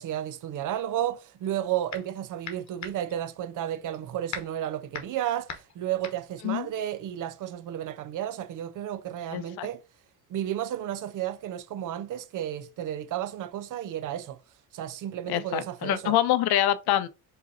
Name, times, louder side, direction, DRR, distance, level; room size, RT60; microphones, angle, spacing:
voice 1, 0.0-9.8 10.3-14.4 14.7-16.2, right 11 dB, 50° right, 0.6 m, -32 dB
sound 1, 1.4-2.2 2.4-7.5, left 6 dB, 40° left, 1.0 m, -41 dB
voice 2, 9.3-9.7 15.3-17.1, left 12 dB, 65° left, 0.7 m, -25 dB
4.9 x 3.0 x 2.7 m
cardioid pair, 110°, 41 cm